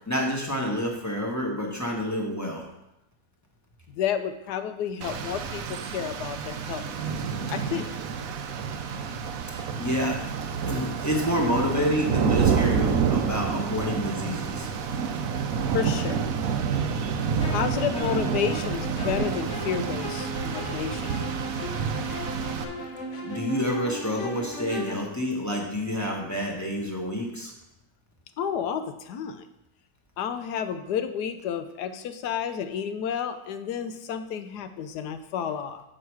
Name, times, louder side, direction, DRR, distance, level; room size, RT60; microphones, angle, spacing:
voice 1, 0.1-2.7 9.5-10.2 10.7-14.7 23.2-27.5, equal, 10° left, -1 dB, 1.1 m, -28 dB
voice 2, 3.9-6.9 7.5-7.9 15.7-16.2 17.5-21.1 28.4-29.5 30.2-35.8, left 8 dB, 75° left, 9 dB, 1.2 m, -31 dB
Rain, 5.0-22.6, right 6 dB, 65° right, 1.0 m, -28 dB
sound 1, 17.4-25.0, equal, 50° left, 1.1 m, -36 dB
7.9 x 6.4 x 4.6 m, 0.88 s
omnidirectional pair, 1.9 m